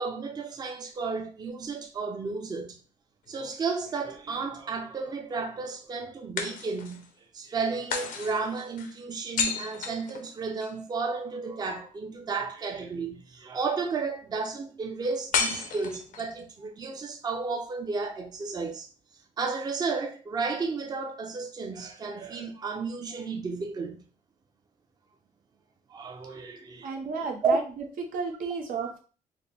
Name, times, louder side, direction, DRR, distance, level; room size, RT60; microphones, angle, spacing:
voice 1, 0.0-2.8 3.3-18.9 19.4-24.1 25.9-26.9 27.4-27.6 28.8-28.9, right 4 dB, 30° right, 0.5 m, -33 dB
sound 1, 3.3-4.3 6.4-7.1 7.9-10.8 15.3-16.4, left 5 dB, 80° left, 0.6 m, -33 dB
voice 2, 26.8-27.6 28.0-29.0, right 5 dB, 90° right, 0.8 m, -32 dB
4.1 x 2.1 x 3.4 m
cardioid pair, 140°, 14 cm